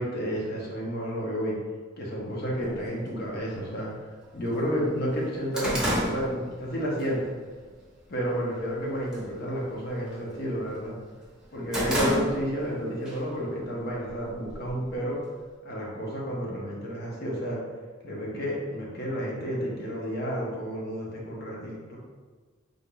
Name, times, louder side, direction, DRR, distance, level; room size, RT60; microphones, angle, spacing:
voice 1, 0.0-1.6 2.0-3.9 4.3-7.3 8.1-10.9 11.5-15.2 15.6-17.6 18.0-22.0, equal, 55° left, -4 dB, 0.8 m, -31 dB
sound 1, 2.7-2.8 3.7-3.8 4.2-4.3 4.7-7.1 7.5-7.8 8.2-8.7 9.0-9.3 9.6-10.8 11.2-12.7 13.1-13.2 14.1-15.0, equal, 5° right, 0.9 m, -30 dB
3.9 x 3.5 x 2.3 m, 1.5 s
head